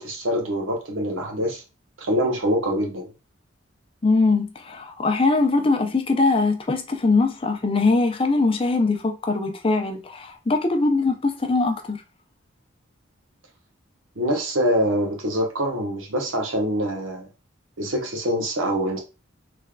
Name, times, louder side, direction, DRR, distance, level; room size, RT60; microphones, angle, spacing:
voice 1, 0.0-1.6 2.0-3.1 14.2-17.3 17.8-19.0, equal, 75° right, 1.1 m, -24 dB
voice 2, 4.0-12.0, left 3 dB, 25° left, 0.5 m, -21 dB
3.6 x 3.2 x 2.2 m
head